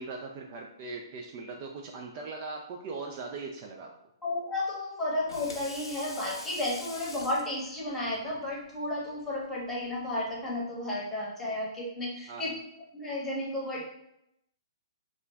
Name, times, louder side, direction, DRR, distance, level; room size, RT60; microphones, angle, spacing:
voice 1, 0.0-3.9 12.3-12.5, right 3 dB, 35° right, 1 dB, 0.3 m, -40 dB
voice 2, 4.2-12.5 12.9-13.8, left 1 dB, 10° left, -4 dB, 0.9 m, -33 dB
Water tap faucet / Sink (filling or washing), 5.1-10.6, left 2 dB, 80° left, 0.5 m, -47 dB
2.5 x 2.1 x 3.3 m, 0.79 s
figure-of-eight pair, 130°, 3 cm